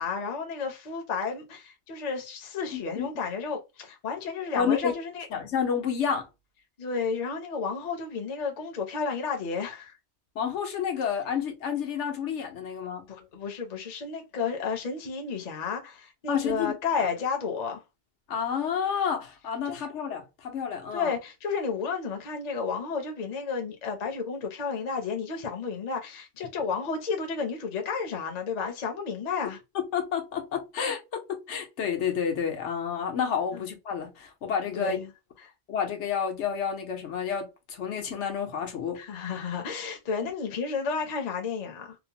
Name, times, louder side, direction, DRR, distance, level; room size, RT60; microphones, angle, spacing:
voice 1, 0.0-5.3 6.8-10.0 13.1-17.8 19.7-19.8 20.9-29.6 33.5-33.6 34.7-35.1 39.0-41.9, left 5 dB, 45° left, 0.7 m, -32 dB
voice 2, 2.7-3.1 4.6-4.9 5.3-6.3 10.3-13.0 16.3-16.7 18.3-21.1 29.7-35.0 35.7-39.0 40.2-40.3, left 7 dB, 85° left, 1.1 m, -30 dB
2.8 x 2.0 x 2.8 m
omnidirectional pair, 1.2 m